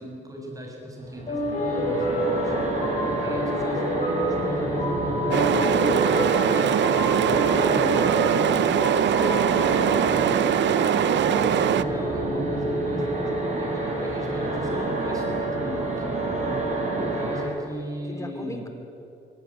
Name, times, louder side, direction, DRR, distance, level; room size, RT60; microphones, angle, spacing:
voice 1, 0.0-8.6 10.6-16.2 16.9-18.7, equal, 15° right, 0 dB, 7.4 m, -37 dB
sound 1, 1.1-17.4, right 2 dB, 35° right, 6.9 m, -28 dB
sound 2, 1.3-10.5, left 1 dB, 40° left, 6.6 m, -29 dB
sound 3, 5.3-11.8, right 10 dB, 65° right, 0.8 m, -22 dB
voice 2, 8.4-9.9 16.3-16.6 18.1-18.7, left 2 dB, 15° left, 5 dB, 3.8 m, -36 dB
24.5 x 17.0 x 9.9 m, 2.8 s
cardioid pair, 90°, 20 cm